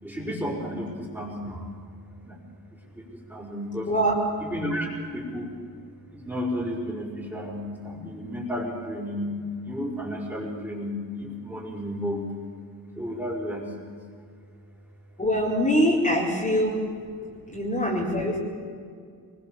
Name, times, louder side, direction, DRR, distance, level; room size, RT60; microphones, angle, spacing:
voice 1, 0.0-1.7 2.2-2.4 3.0-3.1 3.3-3.9 4.4-4.9 5.1-5.5 6.1-9.3 9.7-12.2 13.0-13.6, equal, 5° right, -2 dB, 5.4 m, -32 dB
voice 2, 15.2-16.9 17.5-18.4, equal, 20° left, -4 dB, 4.4 m, -23 dB
23.0 x 22.0 x 7.0 m, 2.2 s
cardioid pair, 130°, 36 cm